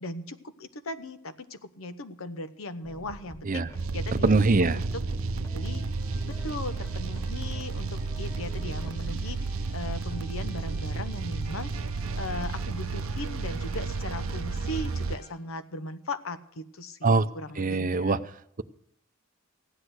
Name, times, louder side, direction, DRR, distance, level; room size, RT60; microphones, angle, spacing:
voice 1, 0.0-3.6 3.9-4.4 4.7-4.9 5.5-5.8 6.3-9.5 9.7-11.7 12.2-18.2, left 2 dB, 80° left, 11 dB, 1.0 m, -38 dB
sound 1, 2.8-8.9, left 1 dB, 15° left, 1.1 m, -47 dB
sound 2, 3.7-15.2, right 3 dB, 80° right, 0.6 m, -32 dB
voice 2, 4.2-4.8 17.0-17.3 17.6-18.2, right 3 dB, 40° right, 12 dB, 0.6 m, -22 dB
sound 3, 5.4-15.3, left 1 dB, 40° left, 5.2 m, -51 dB
15.5 x 10.0 x 6.4 m, 0.72 s
head